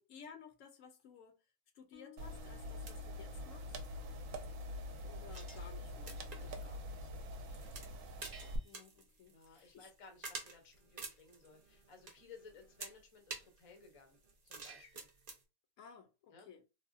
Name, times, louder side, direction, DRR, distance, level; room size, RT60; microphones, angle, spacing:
voice 1, 0.0-1.4 1.7-3.7 5.0-6.6 8.6-9.9 15.8-16.6, left 6 dB, 70° left, 0.9 m, -56 dB
Bass guitar, 1.9-9.1, left 9 dB, 90° left, 1.2 m, -64 dB
Monitor button, 2.2-8.6, left 1 dB, 75° right, 0.9 m, -45 dB
sound 1, 2.8-15.4, right 4 dB, 45° right, 0.5 m, -52 dB
voice 2, 6.3-7.9 9.3-14.2 14.4-15.1 16.3-16.5, left 4 dB, 35° left, 0.5 m, -59 dB
3.3 x 2.1 x 2.4 m
omnidirectional pair, 1.4 m